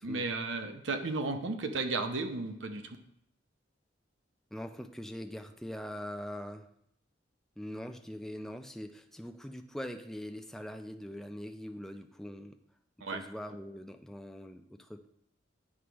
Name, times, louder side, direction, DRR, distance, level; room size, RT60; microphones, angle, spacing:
voice 1, 0.0-3.0 13.0-13.2, right 3 dB, 80° right, 7 dB, 0.7 m, -34 dB
voice 2, 4.5-6.7 7.6-12.6 13.1-15.1, equal, ahead, 6 dB, 0.4 m, -42 dB
9.6 x 4.8 x 3.0 m, 0.74 s
head